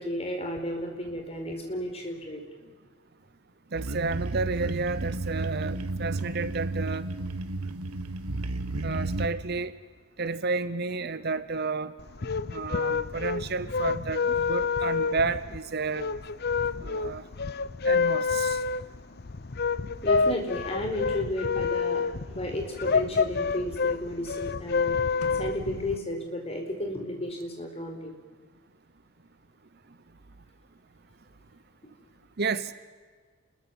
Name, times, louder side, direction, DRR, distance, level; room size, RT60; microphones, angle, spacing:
voice 1, 0.0-2.4 16.8-16.9 20.0-25.0 25.4-28.2, left 1 dB, 25° left, 3 dB, 4.6 m, -33 dB
voice 2, 3.7-7.1 8.8-9.7 10.2-11.9 12.5-16.1 16.8-17.2 17.8-18.6 32.4-32.7, right 4 dB, 45° right, 14 dB, 0.8 m, -31 dB
sound 1, 3.7-9.3, right 2 dB, 80° right, 1.6 m, -32 dB
sound 2, 12.0-26.0, left 5 dB, 45° left, 0.6 m, -28 dB
sound 3, 25.2-27.2, left 1 dB, 85° left, 2.4 m, -47 dB
29.5 x 21.5 x 7.2 m, 1.6 s
head